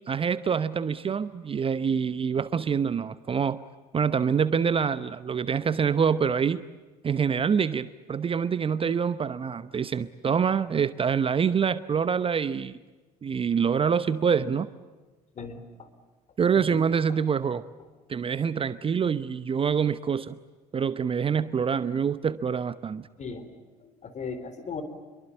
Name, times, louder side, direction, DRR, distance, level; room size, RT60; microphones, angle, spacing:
voice 1, 0.1-3.6 3.9-6.6 7.0-12.8 13.2-14.7 16.4-17.6 18.1-20.4 20.7-23.1, right 6 dB, 25° right, 15 dB, 0.9 m, -26 dB
voice 2, 23.8-24.8, left 5 dB, 35° left, 10 dB, 4.0 m, -37 dB
27.5 x 23.5 x 8.5 m, 1.3 s
figure-of-eight pair, 60°, 20 cm